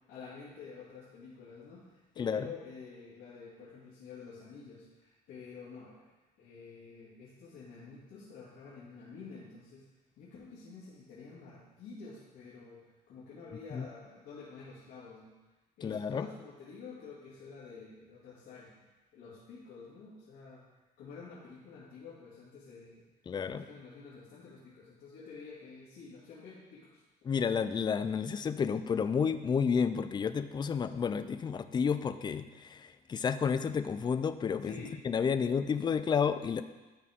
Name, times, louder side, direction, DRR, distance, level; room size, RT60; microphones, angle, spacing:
voice 1, 0.1-6.0 6.4-9.8 10.2-12.8 13.1-15.3 15.8-20.6 21.0-22.9 23.5-27.0 34.6-35.0, left 5 dB, 80° left, -11 dB, 2.6 m, -49 dB
voice 2, 15.8-16.3 23.3-23.6 27.2-34.7 35.0-36.6, left 6 dB, 25° left, 11 dB, 0.4 m, -31 dB
12.5 x 4.4 x 3.7 m, 1.2 s
cardioid pair, 110°, 17 cm